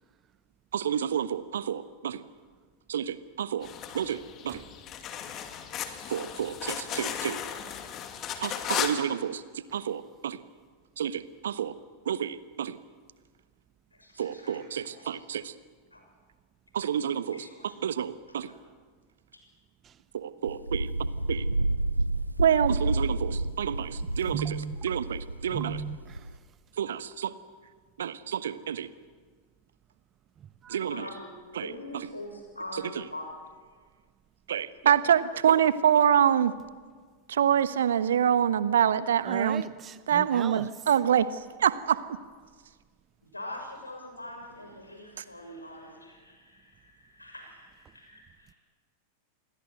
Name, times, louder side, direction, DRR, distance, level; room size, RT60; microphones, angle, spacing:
voice 1, 0.7-2.2 2.9-3.7 3.9-4.6 6.1-7.4 8.4-10.4 11.0-11.8 12.0-12.8 14.2-15.5 16.7-17.5 17.8-18.5 20.1-20.9 21.3-21.5 22.4-25.8 26.8-27.3 28.0-28.9 30.7-31.1 31.5-32.0 34.5-36.5 37.3-39.6 40.1-42.2 45.2-45.3, right 9 dB, 65° right, 1.1 m, -27 dB
sound 1, 3.6-9.0, left 9 dB, 30° left, 2.3 m, -35 dB
voice 2, 13.9-15.1 15.9-16.0 17.2-17.8 18.3-18.5 30.9-33.3 43.3-48.6, left 1 dB, 85° left, 6.7 m, -43 dB
Wind, 20.4-26.4, right 2 dB, 85° right, 0.8 m, -30 dB
voice 3, 24.3-24.8 25.5-26.3 30.6-30.8 39.3-40.7, right 8 dB, 25° right, 0.7 m, -36 dB
27.5 x 21.5 x 7.9 m
figure-of-eight pair, 90°, 0 cm